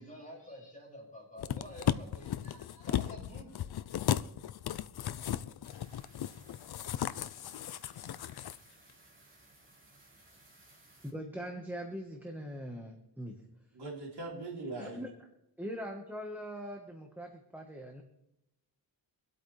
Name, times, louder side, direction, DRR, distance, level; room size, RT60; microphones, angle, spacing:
voice 1, 0.0-4.2, left 1 dB, 20° left, -4 dB, 5.9 m, -50 dB
sound 1, 1.4-8.6 8.9-9.0, left 11 dB, 65° left, 0.5 m, -35 dB
sound 2, 5.6-11.1, right 2 dB, 30° right, 2.9 m, -61 dB
voice 2, 11.0-13.3 14.8-15.1 15.6-18.0, equal, 5° right, 1 dB, 1.2 m, -41 dB
voice 3, 13.7-15.0, right 2 dB, 70° right, -3 dB, 3.4 m, -40 dB
25.0 x 8.5 x 3.3 m, 0.87 s
wide cardioid pair, 175°, 41 cm